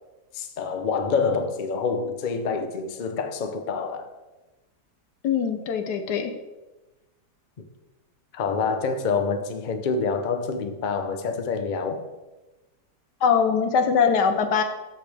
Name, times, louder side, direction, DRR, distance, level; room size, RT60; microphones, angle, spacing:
voice 1, 0.3-4.1 8.3-12.0, left 5 dB, 50° left, 0.6 m, -27 dB
voice 2, 5.2-6.3 13.2-14.6, left 6 dB, 80° left, 1.4 m, -22 dB
13.5 x 5.1 x 3.4 m
omnidirectional pair, 1.8 m